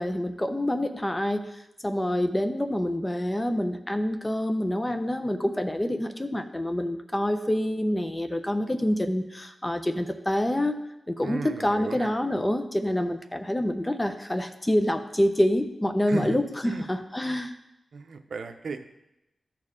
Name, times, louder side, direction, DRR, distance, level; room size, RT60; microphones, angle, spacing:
voice 1, 0.0-10.8 11.1-17.5, left 1 dB, 20° left, 8 dB, 0.7 m, -27 dB
voice 2, 11.2-12.2 16.1-16.9 17.9-18.9, right 4 dB, 80° right, 7 dB, 0.6 m, -36 dB
13.0 x 4.5 x 3.7 m, 0.89 s
cardioid pair, 65°, 0 cm